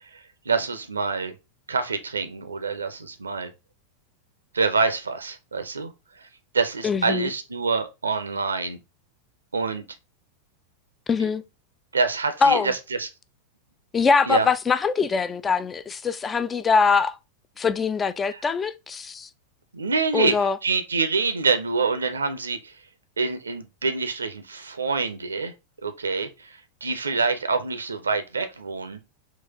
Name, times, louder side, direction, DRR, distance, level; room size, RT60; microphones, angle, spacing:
voice 1, 0.1-1.3 1.7-3.5 4.5-5.9 6.2-6.3 6.5-8.8 9.5-9.8 11.9-13.1 14.3-14.5 18.3-18.4 19.7-20.3 20.6-22.7 23.2-25.5 25.8-29.0, right 4 dB, 75° right, 0.6 m, -26 dB
voice 2, 6.8-7.3 11.1-11.4 12.4-12.7 13.9-17.2 17.6-19.3 20.1-20.6, left 5 dB, 20° left, 0.4 m, -22 dB
4.0 x 2.5 x 3.5 m
figure-of-eight pair, 90°, 0 cm